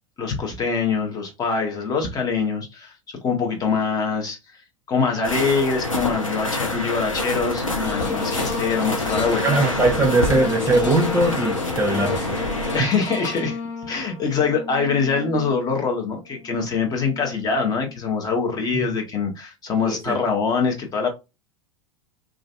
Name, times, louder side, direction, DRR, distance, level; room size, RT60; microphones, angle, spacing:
voice 1, 0.2-2.9 3.2-4.4 4.9-9.6 12.7-13.6 13.9-21.1, left 5 dB, 25° left, 0.7 m, -24 dB
sound 1, 5.2-12.8, left 2 dB, 90° left, 0.6 m, -26 dB
sound 2, 7.8-18.2 18.7-18.8, left 4 dB, 60° left, 1.2 m, -33 dB
voice 2, 9.4-12.4 12.8-12.9 18.7-18.9 19.8-20.2, right 2 dB, 15° right, 0.5 m, -21 dB
2.5 x 2.3 x 2.2 m
figure-of-eight pair, 85°, 17 cm